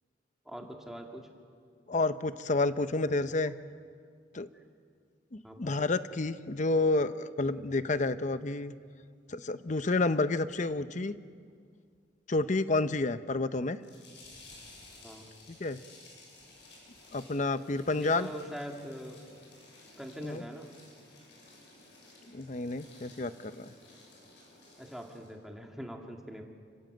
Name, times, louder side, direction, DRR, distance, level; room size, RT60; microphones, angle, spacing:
voice 1, 0.5-1.3 4.5-4.7 5.4-5.9 15.0-15.3 17.9-19.2 20.0-20.7 24.8-26.4, equal, ahead, 1 dB, 2.1 m, -43 dB
voice 2, 1.9-3.5 4.3-4.5 5.3-8.7 9.3-11.1 12.3-13.8 15.6-15.8 17.1-18.3 20.2-20.4 22.3-23.7, left 2 dB, 40° left, 12 dB, 0.7 m, -30 dB
sound 1, 13.8-25.3, left 2 dB, 75° left, 7.8 m, -55 dB
30.0 x 17.0 x 7.9 m, 2.1 s
head